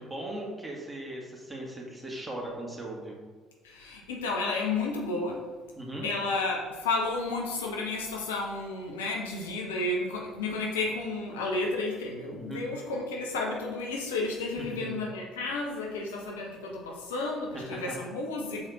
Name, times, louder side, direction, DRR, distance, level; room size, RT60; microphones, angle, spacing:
voice 1, 0.0-3.2 5.8-6.1 12.3-12.6 14.6-15.0 17.5-18.0, right 1 dB, 15° right, -2 dB, 1.9 m, -38 dB
voice 2, 3.6-5.4 6.0-18.7, left 3 dB, 75° left, 0 dB, 0.8 m, -32 dB
6.6 x 4.2 x 4.1 m, 1.4 s
figure-of-eight pair, 50°, 0 cm